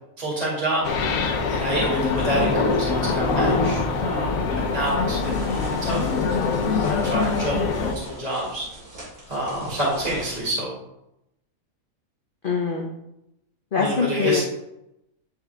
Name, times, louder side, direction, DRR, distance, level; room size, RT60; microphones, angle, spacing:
voice 1, 0.2-0.9 1.5-6.1 6.8-8.7 9.3-10.7 13.8-14.4, right 1 dB, 25° right, -6 dB, 2.2 m, -28 dB
sound 1, 0.8-7.9, left 4 dB, 70° left, 1.1 m, -23 dB
sound 2, 5.2-10.5, right 1 dB, 75° right, 3.1 m, -42 dB
voice 2, 12.4-12.9 13.7-14.4, left 6 dB, 45° left, -1 dB, 0.8 m, -23 dB
10.0 x 3.4 x 3.4 m, 0.84 s
omnidirectional pair, 1.5 m